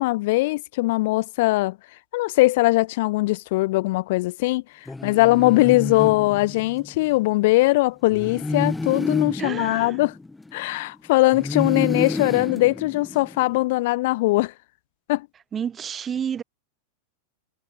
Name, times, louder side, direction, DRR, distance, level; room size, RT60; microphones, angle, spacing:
voice 1, 0.0-1.8 2.1-4.6 5.0-10.1 10.5-14.5 15.1-15.3, left 20 dB, 50° left, 0.7 m, -21 dB
sound 1, 4.9-7.0 8.1-10.8 11.3-13.6, left 2 dB, 5° left, 0.3 m, -30 dB
voice 2, 9.4-10.0 15.5-16.4, right 8 dB, 25° right, 1.0 m, -30 dB
figure-of-eight pair, 90°, 0 cm